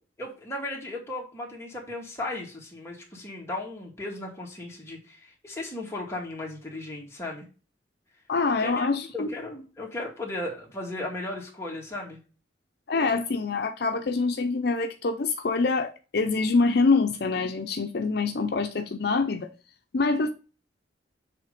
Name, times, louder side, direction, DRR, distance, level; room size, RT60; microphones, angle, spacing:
voice 1, 0.2-7.5 8.6-8.9 9.1-12.2, left 2 dB, 15° left, 2.2 m, -36 dB
voice 2, 8.3-9.3 12.9-19.5 19.9-20.3, left 3 dB, 60° left, 0.5 m, -25 dB
7.7 x 3.3 x 5.0 m
head